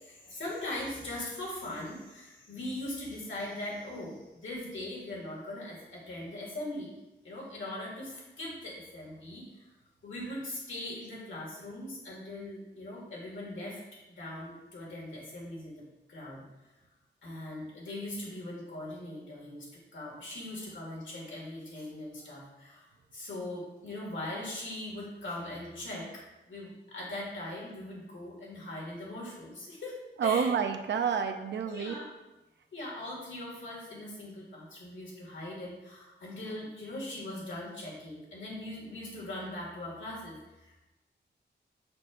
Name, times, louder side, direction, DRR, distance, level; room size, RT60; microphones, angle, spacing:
voice 1, 0.0-6.9 7.2-9.7 10.0-13.8 14.1-16.4 17.2-22.8 23.1-26.1 26.5-30.5 31.7-32.1 32.7-40.7, left 1 dB, 80° left, -4 dB, 2.2 m, -40 dB
voice 2, 30.2-31.9, right 6 dB, 70° right, 5 dB, 0.6 m, -29 dB
6.2 x 6.0 x 2.6 m, 1.0 s
wide cardioid pair, 120°, 19 cm